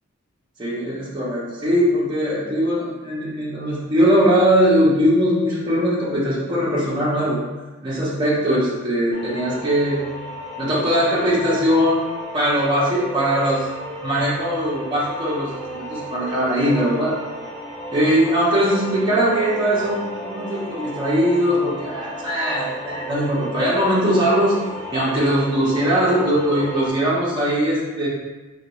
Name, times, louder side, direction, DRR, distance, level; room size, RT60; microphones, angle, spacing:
voice 1, 0.6-7.4 7.8-10.0 10.6-12.0 12.3-13.7 14.0-15.6 15.9-17.1 17.9-24.6 24.9-28.1, equal, 20° right, -7 dB, 0.7 m, -20 dB
sound 1, 9.1-26.9, equal, 20° left, 0.6 m, -34 dB
3.8 x 2.3 x 3.0 m, 1.2 s
head